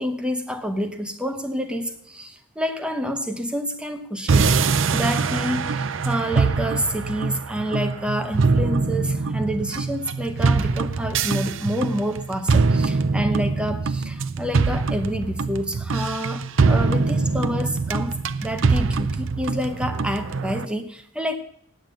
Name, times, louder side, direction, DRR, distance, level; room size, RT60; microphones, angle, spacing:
voice 1, 0.0-4.6 4.9-21.4, equal, 5° right, 6 dB, 0.9 m, -28 dB
sound 1, 4.3-20.7, right 4 dB, 65° right, 0.5 m, -23 dB
9.1 x 8.8 x 7.7 m, 0.67 s
head